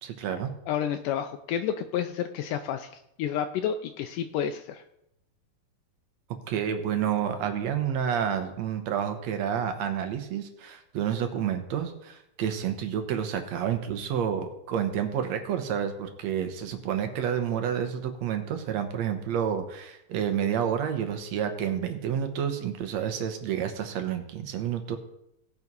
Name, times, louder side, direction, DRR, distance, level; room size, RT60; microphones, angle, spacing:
voice 1, 0.0-0.5 6.5-25.0, right 8 dB, 65° right, 7 dB, 1.9 m, -29 dB
voice 2, 0.7-2.9 3.2-4.8, left 9 dB, 80° left, 7 dB, 2.1 m, -30 dB
17.0 x 5.7 x 5.3 m, 0.80 s
omnidirectional pair, 3.9 m